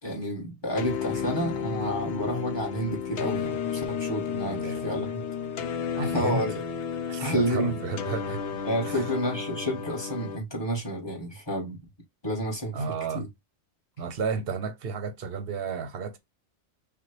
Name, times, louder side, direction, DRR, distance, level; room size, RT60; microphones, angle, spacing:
voice 1, 0.0-5.2 6.0-6.5 7.2-7.8 8.6-11.8 12.2-12.8 13.1-13.3, equal, 25° left, 1.3 m, -30 dB
sound 1, 0.8-10.4, left 7 dB, 80° left, 0.9 m, -32 dB
voice 2, 4.4-5.1 6.0-6.4 7.1-8.4 8.9-9.1 12.7-13.3 14.0-16.2, right 5 dB, 65° right, 0.7 m, -32 dB
5.6 x 2.2 x 2.9 m
omnidirectional pair, 1.2 m